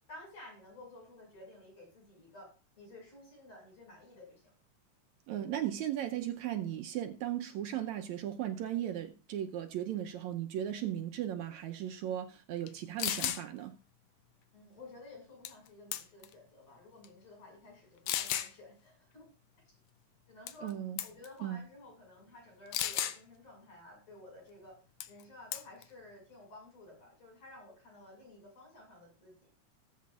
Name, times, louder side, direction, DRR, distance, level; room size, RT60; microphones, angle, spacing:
voice 1, 0.1-4.6 14.5-19.3 20.3-20.7 21.0-24.8 25.1-29.5, left 2 dB, 55° left, 0 dB, 6.9 m, -53 dB
voice 2, 5.3-13.8 20.6-21.0 21.4-21.6, right 11 dB, 75° right, 5 dB, 2.0 m, -36 dB
sound 1, 12.7-12.8 13.0-13.4 15.4-15.7 15.9-16.3 17.0-17.1 18.1-18.5 20.5-20.7 21.0-21.3 22.7-23.2 25.0-25.2 25.5-25.8, left 11 dB, 75° left, 2.0 m, -34 dB
18.5 x 8.5 x 2.4 m, 0.34 s
omnidirectional pair, 3.6 m